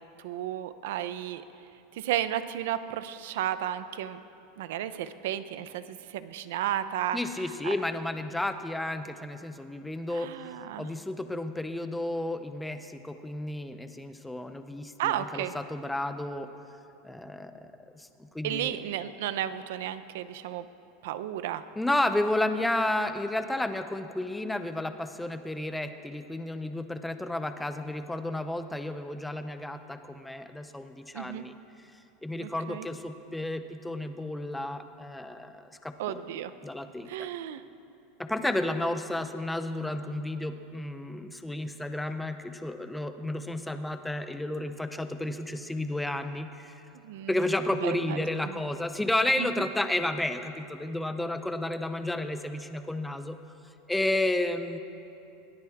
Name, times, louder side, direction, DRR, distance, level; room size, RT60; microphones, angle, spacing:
voice 1, 0.2-1.4 2.0-4.2 4.6-5.8 6.1-7.2 7.6-7.7 10.1-10.9 15.0-15.5 18.4-20.6 21.0-21.6 31.1-31.4 32.4-32.9 36.0-36.5 37.1-37.6 47.0-47.3 47.8-48.2 48.5-48.6 49.4-49.6, right 11 dB, 65° right, 12 dB, 0.7 m, -33 dB
voice 2, 7.1-10.3 10.8-16.5 17.0-17.5 18.0-18.1 18.3-18.8 21.8-31.5 32.2-36.2 36.6-37.3 38.2-46.8 47.3-53.4 53.9-54.8, left 1 dB, 5° left, 9 dB, 0.6 m, -32 dB
22.0 x 18.5 x 3.6 m, 2.8 s
supercardioid pair, 180°, 0 cm